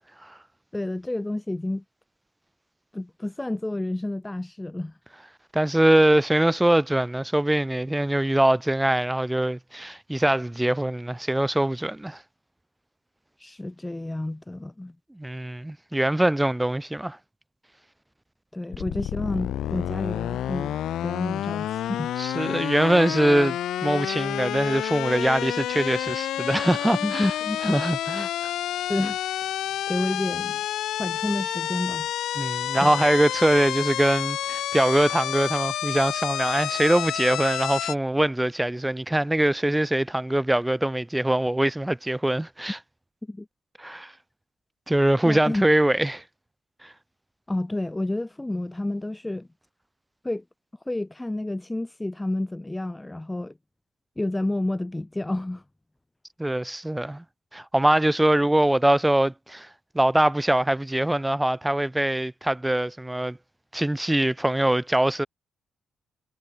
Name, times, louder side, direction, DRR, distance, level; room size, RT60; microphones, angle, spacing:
voice 1, 0.7-1.8 2.9-5.0 13.4-14.9 18.5-20.7 21.0-22.1 27.0-27.8 28.7-29.2 29.9-30.6 31.0-32.1 32.8-32.9 43.3-43.5 45.2-45.7 47.5-49.5 50.2-50.4 50.9-53.5 54.2-55.6, left 1 dB, 15° left, 0.5 m, -30 dB
voice 2, 5.5-12.2 15.1-17.2 22.2-27.3 27.6-28.5 32.4-42.8 43.8-44.1 44.9-46.2 46.8-46.9 56.4-57.2 57.5-59.7 59.9-63.4 63.7-65.3, right 1 dB, 10° right, 1.1 m, -23 dB
sound 1, 18.7-38.0, left 12 dB, 80° left, 0.4 m, -29 dB
cardioid pair, 75°, 0 cm